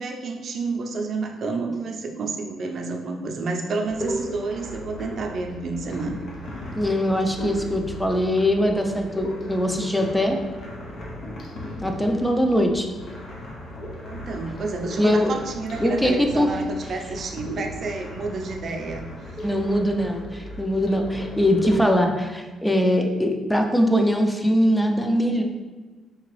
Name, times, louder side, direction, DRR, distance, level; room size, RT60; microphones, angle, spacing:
voice 1, 0.0-6.2 14.0-19.4, right 3 dB, 55° right, 4 dB, 0.5 m, -30 dB
sound 1, 3.9-21.8, equal, 65° left, 0.7 m, -36 dB
voice 2, 6.7-10.4 11.8-12.9 15.0-15.4 15.8-16.5 19.4-25.4, equal, 5° left, 3 dB, 0.5 m, -22 dB
3.8 x 2.9 x 3.1 m, 1.3 s
cardioid pair, 90°, 0 cm